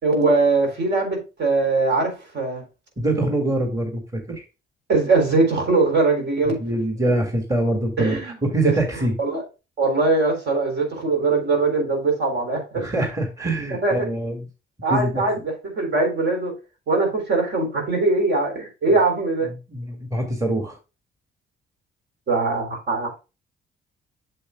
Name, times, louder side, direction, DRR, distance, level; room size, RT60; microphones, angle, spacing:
voice 1, 0.0-2.6 4.9-6.6 8.0-8.4 8.6-8.7 9.2-9.4 9.8-12.9 13.8-14.0 14.8-16.5 16.9-19.5 22.3-23.1, right 3 dB, 60° right, 3.9 m, -21 dB
voice 2, 3.0-4.4 6.6-9.1 12.7-14.4 14.9-15.2 18.9-19.0 19.7-20.8, right 1 dB, 15° right, 2.1 m, -24 dB
8.3 x 7.0 x 2.3 m
cardioid pair, 90°, 20 cm